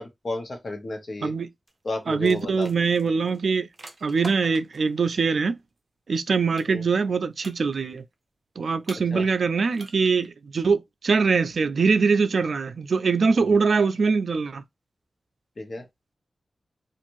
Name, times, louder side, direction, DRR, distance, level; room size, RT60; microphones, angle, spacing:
voice 1, 0.0-1.3 1.8-2.7 6.7-6.8 9.1-9.2 13.3-13.6 15.6-15.9, left 2 dB, 50° left, 0.9 m, -33 dB
sound 1, 1.7-1.9 2.1-4.9 6.6-7.1 7.4-8.0 8.8-9.4 9.7-10.3, right 2 dB, 35° right, 0.6 m, -44 dB
voice 2, 2.1-3.7 4.0-5.6 6.1-8.0 8.6-14.6, right 5 dB, 70° right, 0.3 m, -23 dB
2.6 x 2.4 x 3.0 m
wide cardioid pair, 105°, 0 cm